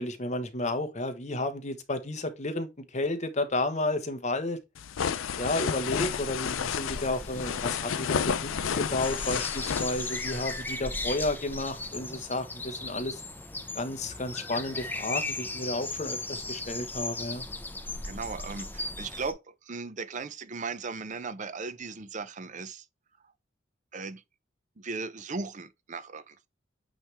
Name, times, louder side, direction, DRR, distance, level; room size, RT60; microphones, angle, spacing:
voice 1, 0.0-4.6 5.4-13.2 13.7-17.4, left 2 dB, 35° left, 1.0 m, -32 dB
sound 1, 4.8-10.6, left 7 dB, 85° left, 0.5 m, -31 dB
sound 2, 5.8-19.3, left 2 dB, 10° left, 0.7 m, -37 dB
voice 2, 18.0-22.9 23.9-24.2 24.8-26.5, right 4 dB, 40° right, 0.6 m, -37 dB
8.6 x 3.2 x 3.4 m
head